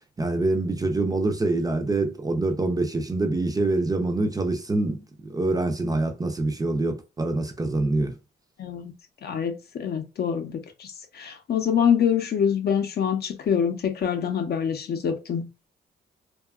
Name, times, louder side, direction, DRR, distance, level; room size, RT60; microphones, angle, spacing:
voice 1, 0.2-8.2, right 2 dB, 20° right, 0.4 m, -25 dB
voice 2, 8.6-8.9 9.2-15.5, left 8 dB, 55° left, 0.6 m, -25 dB
2.7 x 2.3 x 2.3 m
cardioid pair, 90°, 20 cm